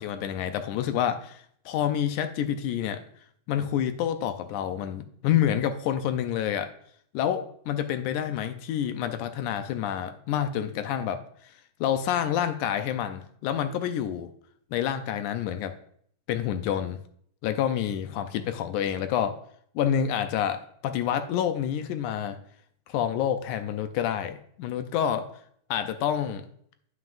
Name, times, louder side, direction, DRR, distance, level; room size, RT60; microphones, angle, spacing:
voice 1, 0.0-3.0 3.5-6.7 7.1-11.2 11.8-14.3 14.7-15.8 16.3-17.0 17.4-19.4 19.8-22.4 22.9-25.3 25.7-26.5, left 9 dB, 80° left, 8 dB, 1.9 m, -28 dB
9.5 x 9.1 x 2.5 m, 0.63 s
omnidirectional pair, 3.9 m